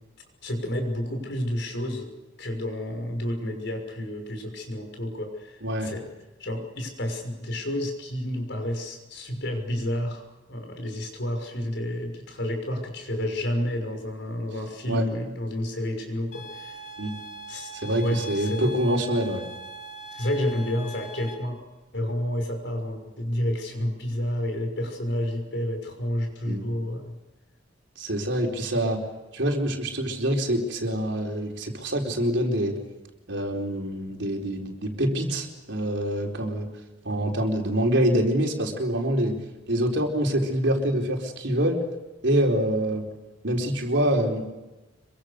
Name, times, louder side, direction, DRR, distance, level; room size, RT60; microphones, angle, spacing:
voice 1, 0.4-2.1 2.4-6.1 6.4-16.8 17.5-17.7 18.0-18.8 20.1-21.6 21.9-27.2, left 1 dB, 65° left, 4 dB, 6.2 m, -30 dB
voice 2, 5.6-5.9 14.9-15.1 17.0-17.1 17.7-19.4 26.5-26.6 28.0-29.0 29.3-32.7 33.3-36.7 37.0-39.4 39.7-41.8 42.2-43.1 43.4-44.4, right 1 dB, 70° right, 2 dB, 4.5 m, -25 dB
sound 1, 16.3-21.3, right 1 dB, 40° left, 3.5 m, -41 dB
26.5 x 24.0 x 6.8 m, 1.1 s
head